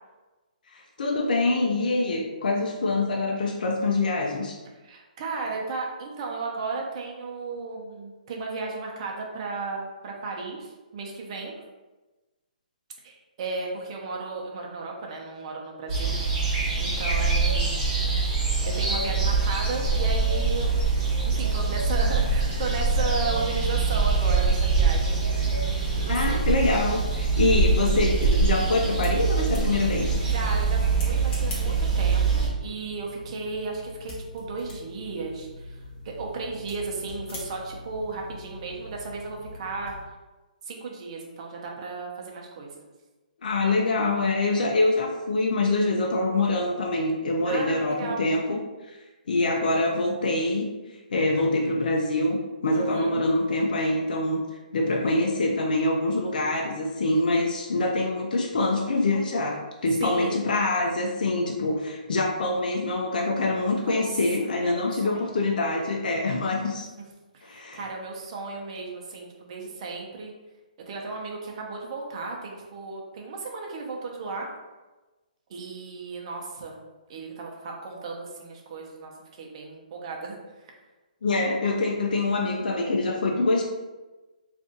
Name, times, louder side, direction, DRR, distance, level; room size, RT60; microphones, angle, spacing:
voice 1, 0.7-4.6 26.1-30.2 43.4-48.6 48.9-49.0 49.3-50.7 51.1-54.4 54.7-66.9 67.4-67.8 81.2-83.6, left 2 dB, 70° left, 0 dB, 0.5 m, -25 dB
voice 2, 4.8-11.5 13.0-16.4 16.8-17.9 18.7-20.8 21.2-25.2 25.9-26.4 30.2-39.9 40.6-42.8 47.4-48.2 52.7-53.2 60.0-60.5 63.7-64.0 64.4-65.3 67.3-70.3 70.9-74.5 75.5-76.8 77.1-80.7, right 3 dB, 40° right, -1 dB, 0.7 m, -35 dB
sound 1, 15.9-32.5, right 4 dB, 25° right, 1.0 m, -24 dB
sound 2, 27.3-40.0, left 1 dB, 20° left, 0.9 m, -43 dB
2.6 x 2.5 x 3.7 m, 1.2 s
hypercardioid pair, 150°, 5 cm